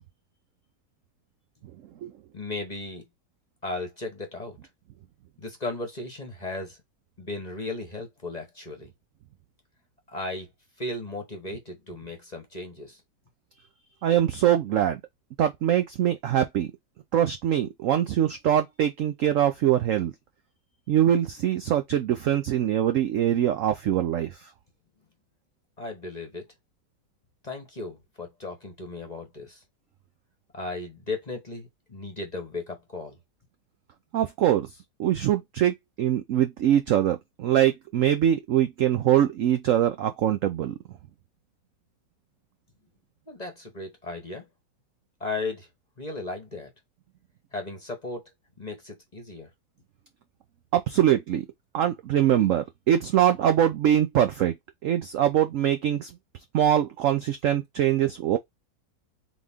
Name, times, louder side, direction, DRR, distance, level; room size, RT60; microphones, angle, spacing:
voice 1, 2.3-3.0 3.6-4.6 5.4-6.8 7.2-8.9 10.1-10.5 10.8-13.0 25.8-26.4 27.4-29.6 30.5-33.2 43.3-44.5 45.2-45.7 46.0-46.7 47.5-48.2 48.6-49.5, left 2 dB, 30° left, 1.0 m, -36 dB
voice 2, 14.0-15.0 15.4-16.7 17.1-20.1 20.9-24.5 34.1-34.7 35.0-40.7 50.7-51.5 51.7-54.5 54.8-56.1 56.5-58.4, right 11 dB, 70° right, 0.7 m, -23 dB
4.1 x 3.0 x 3.5 m
omnidirectional pair, 1.9 m